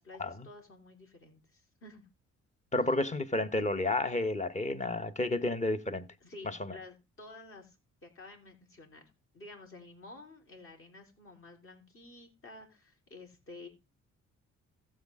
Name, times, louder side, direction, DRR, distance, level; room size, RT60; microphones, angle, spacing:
voice 1, 0.0-2.0 6.2-7.8 8.0-9.1 9.3-13.7, left 2 dB, 45° left, 4.3 m, -51 dB
voice 2, 2.7-6.1, left 2 dB, 25° left, 1.2 m, -31 dB
14.5 x 7.6 x 3.7 m
cardioid pair, 90°, 30 cm